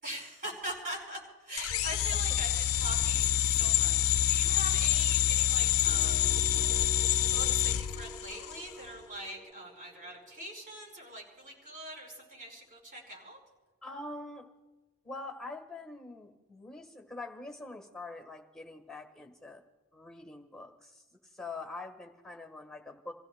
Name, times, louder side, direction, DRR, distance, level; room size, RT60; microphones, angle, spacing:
voice 1, 0.0-6.3 7.3-13.4, right 1 dB, 40° right, -2 dB, 4.5 m, -42 dB
sound 1, 1.6-8.7, left 12 dB, 65° left, 0.3 m, -27 dB
sound 2, 5.9-11.7, right 2 dB, 15° right, 1.8 m, -48 dB
voice 2, 13.8-14.5 15.0-19.6 19.9-21.0 21.3-23.1, left 2 dB, ahead, 3 dB, 1.3 m, -44 dB
29.5 x 16.0 x 2.2 m, 1.2 s
head